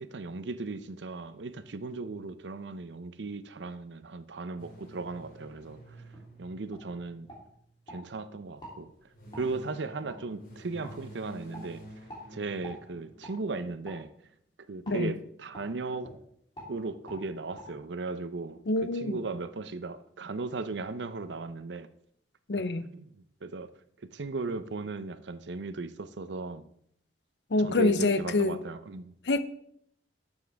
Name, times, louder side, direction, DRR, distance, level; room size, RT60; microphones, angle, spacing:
voice 1, 0.0-5.8 6.4-7.3 7.9-8.9 9.4-11.8 12.3-14.1 14.7-16.1 16.7-21.9 22.9-23.7 24.1-26.7 27.6-29.1, right 3 dB, 80° right, 0.6 m, -37 dB
sound 1, 4.6-8.0 8.9-13.7, right 1 dB, 50° left, 2.9 m, -51 dB
sound 2, 6.1-6.3 6.7-6.9 7.3-8.0 8.6-8.8 9.3-9.5 10.1-10.2 10.8-11.0 11.5-11.7 12.1-12.3 12.6-12.8 13.2-13.4 13.8-14.0 14.8-15.0 15.5-15.7 16.0-16.2 16.5-16.7 17.1-17.2 17.6-17.7, equal, 25° left, 2.9 m, -46 dB
voice 2, 18.7-19.2 22.5-22.9 27.5-28.6 29.2-29.4, left 2 dB, 75° left, 0.6 m, -26 dB
11.5 x 7.2 x 3.5 m
head